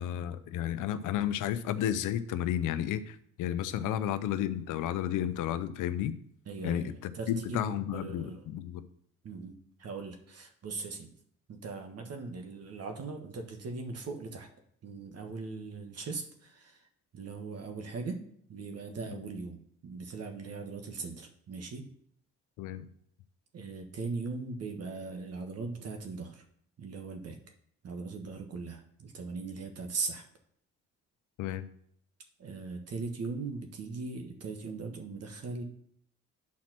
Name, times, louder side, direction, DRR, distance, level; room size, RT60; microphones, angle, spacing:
voice 1, 0.0-6.1 6.6-8.8 22.6-22.9 31.4-31.6, left 10 dB, 90° left, 12 dB, 0.7 m, -32 dB
voice 2, 6.5-8.5 9.2-11.1 11.5-14.5 14.8-16.9 17.1-18.2 18.5-21.9 23.5-26.4 26.8-27.4 27.8-30.2 32.4-35.6, right 4 dB, 55° right, 4 dB, 1.4 m, -39 dB
8.5 x 4.3 x 6.0 m, 0.67 s
cardioid pair, 90°, 30 cm